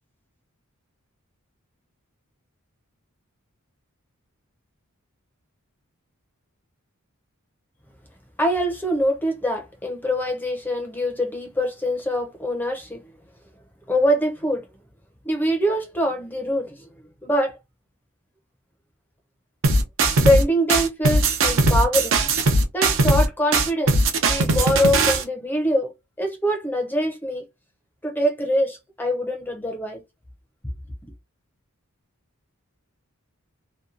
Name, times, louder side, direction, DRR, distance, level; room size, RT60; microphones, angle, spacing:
voice 1, 8.4-13.0 13.9-14.7 15.2-16.9 17.2-17.5 20.2-22.2 22.7-25.9 26.2-27.4 28.0-30.0, equal, 10° left, 0.6 m, -24 dB
sound 1, 19.6-20.4 20.7-23.3 23.5-25.2, right 2 dB, 65° right, 0.7 m, -19 dB
2.8 x 2.2 x 2.5 m
head